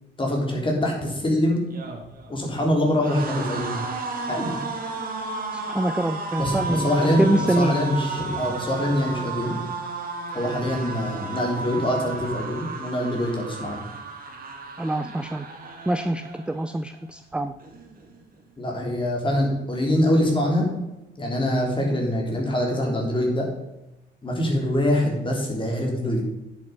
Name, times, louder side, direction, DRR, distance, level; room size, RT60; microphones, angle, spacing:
voice 1, 0.2-1.6 2.3-3.8 4.3-4.5 6.4-9.6 10.3-13.8 18.6-20.7 21.2-23.5 24.2-26.3, left 1 dB, 25° left, 0 dB, 3.7 m, -24 dB
sound 1, 1.6-16.8 17.1-17.3 17.6-18.4, right 3 dB, 50° right, 2.4 m, -33 dB
voice 2, 5.5-6.9 7.2-7.7 14.8-15.5 15.9-17.5, right 1 dB, 5° right, 10 dB, 0.5 m, -25 dB
10.0 x 8.0 x 5.4 m, 0.97 s
cardioid pair, 105°, 19 cm